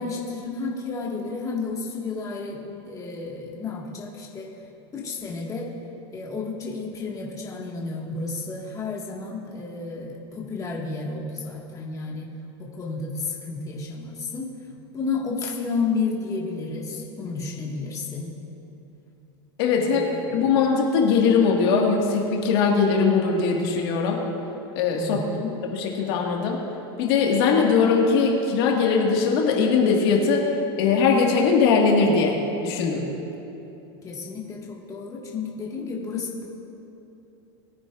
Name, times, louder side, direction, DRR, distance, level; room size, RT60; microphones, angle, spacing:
voice 1, 0.0-4.5 4.9-5.7 6.1-12.3 12.6-14.5 14.9-18.4 19.8-20.3 24.9-25.6 34.0-36.5, left 4 dB, 25° left, -4 dB, 1.8 m, -31 dB
voice 2, 19.6-20.0 20.3-24.2 24.8-25.2 25.7-26.6 27.0-30.4 30.8-33.1, left 5 dB, 65° left, -1 dB, 1.8 m, -20 dB
21.0 x 9.6 x 2.5 m, 2.9 s
supercardioid pair, 125°, 14 cm